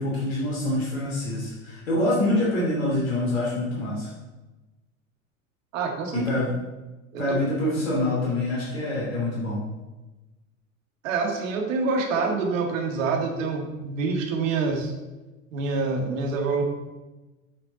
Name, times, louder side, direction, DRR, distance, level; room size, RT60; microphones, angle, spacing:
voice 1, 0.0-4.1 6.1-6.5 7.2-9.6, left 1 dB, 80° left, -6 dB, 2.6 m, -25 dB
voice 2, 5.7-6.3 7.1-7.2 11.0-14.9 15.5-16.6, right 4 dB, 70° right, 3 dB, 1.8 m, -26 dB
8.8 x 6.0 x 3.9 m, 1.1 s
hypercardioid pair, 85°, 40 cm